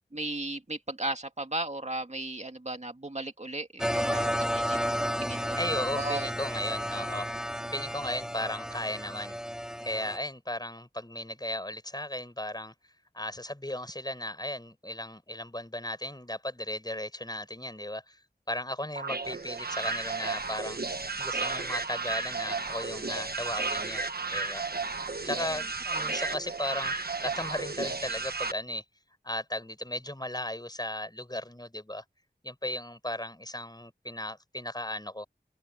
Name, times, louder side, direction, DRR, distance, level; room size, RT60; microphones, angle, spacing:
voice 1, 0.1-5.6 5.9-6.3 26.0-26.2, right 2 dB, 40° right, 2.2 m, -36 dB
sound 1, 3.8-10.2, equal, 5° right, 3.6 m, -32 dB
voice 2, 5.6-7.3 7.7-9.4 9.8-12.7 13.1-18.2 18.5-20.8 21.2-24.6 25.2-28.8 29.2-32.0 32.4-35.3, left 1 dB, 20° left, 5.7 m, -36 dB
sound 2, 19.0-28.5, right 4 dB, 60° right, 1.2 m, -33 dB
open air
wide cardioid pair, 50°, 18 cm